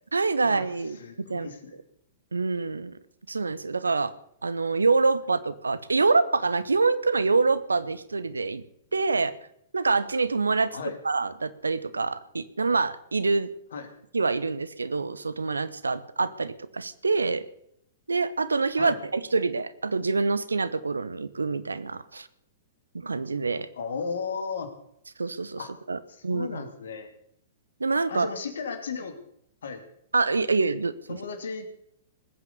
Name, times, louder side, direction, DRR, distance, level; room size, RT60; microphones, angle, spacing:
voice 1, 0.1-1.0 1.3-1.5 2.3-3.0 3.3-4.1 4.4-8.6 8.9-9.4 9.7-10.8 11.0-13.5 14.1-17.4 18.1-22.3 22.9-23.7 25.2-25.6 25.9-26.6 27.8-28.3 30.1-31.2, right 4 dB, 75° right, 16 dB, 1.0 m, -26 dB
voice 2, 1.0-1.8 10.7-11.0 13.7-13.9 18.8-19.0 23.8-24.7 25.6-25.7 26.1-27.1 28.1-29.1 29.6-29.8 31.1-31.7, left 5 dB, 65° left, 8 dB, 2.7 m, -35 dB
20.0 x 9.4 x 6.8 m, 0.71 s
figure-of-eight pair, 105°, 0 cm